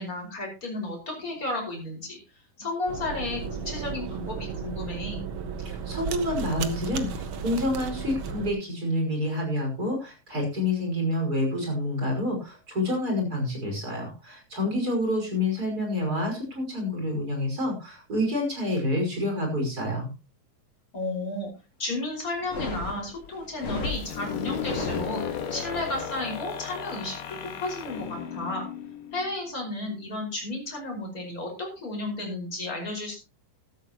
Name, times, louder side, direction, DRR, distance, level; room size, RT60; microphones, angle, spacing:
voice 1, 0.0-2.2 2.6-5.2 20.9-21.5 21.8-28.6 29.1-33.2, left 2 dB, 25° left, 1 dB, 5.7 m, -33 dB
sound 1, 2.9-8.5, right 5 dB, 60° right, 1.3 m, -34 dB
voice 2, 5.6-20.1, left 1 dB, 25° right, 2 dB, 5.6 m, -28 dB
sound 2, 22.4-25.6, left 3 dB, 50° left, 4.0 m, -35 dB
sound 3, 23.9-29.6, left 8 dB, 70° left, 3.2 m, -35 dB
14.5 x 13.0 x 3.0 m, 0.29 s
omnidirectional pair, 3.9 m